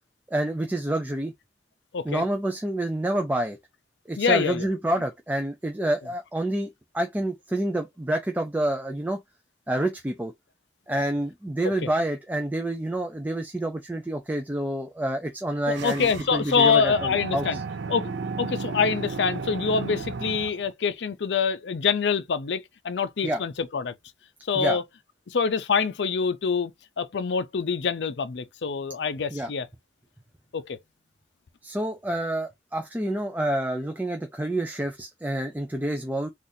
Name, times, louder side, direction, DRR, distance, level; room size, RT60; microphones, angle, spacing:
voice 1, 0.3-1.3 2.0-3.6 4.1-6.7 6.9-9.2 9.7-10.3 10.9-17.6 23.2-23.4 24.6-24.8 29.3-29.5 31.6-36.3, right 1 dB, 10° right, 0.5 m, -28 dB
voice 2, 4.2-4.7 11.6-11.9 15.7-17.6 17.9-18.1 18.4-23.9 24.5-24.8 25.3-29.7 30.5-30.8, left 5 dB, 80° left, 0.5 m, -25 dB
sound 1, 15.7-20.7, right 4 dB, 85° right, 0.4 m, -34 dB
4.0 x 2.5 x 2.7 m
head